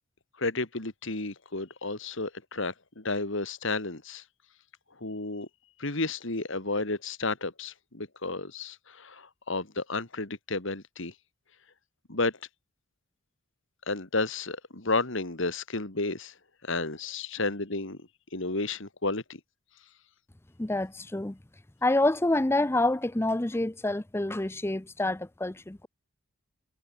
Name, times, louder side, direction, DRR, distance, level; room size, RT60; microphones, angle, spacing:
voice 1, 0.4-4.2 5.0-5.5 5.8-11.1 12.1-12.3 13.9-16.3 16.6-18.0 18.3-19.4, left 3 dB, 60° left, 2.2 m, -32 dB
voice 2, 20.6-21.4 21.8-25.9, left 2 dB, 10° left, 0.5 m, -27 dB
head